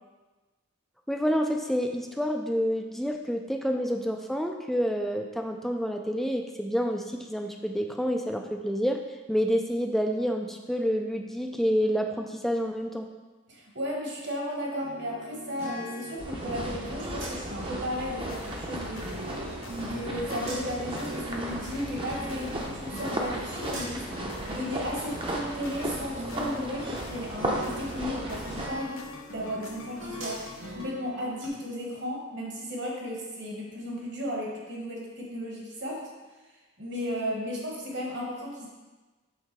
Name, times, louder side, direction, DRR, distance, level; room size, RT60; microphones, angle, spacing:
voice 1, 1.1-9.0 9.3-13.1, equal, ahead, 3 dB, 0.3 m, -28 dB
voice 2, 13.5-19.4 19.8-29.0 29.3-36.0 36.8-38.7, equal, 55° right, -2 dB, 1.5 m, -35 dB
sound 1, 14.8-27.1 27.4-31.5, right 1 dB, 70° right, 1.8 m, -41 dB
sound 2, 16.2-28.7, right 1 dB, 25° right, 0.7 m, -35 dB
sound 3, 18.2-30.9, left 3 dB, 80° left, 0.7 m, -47 dB
6.6 x 3.8 x 4.6 m, 1.2 s
head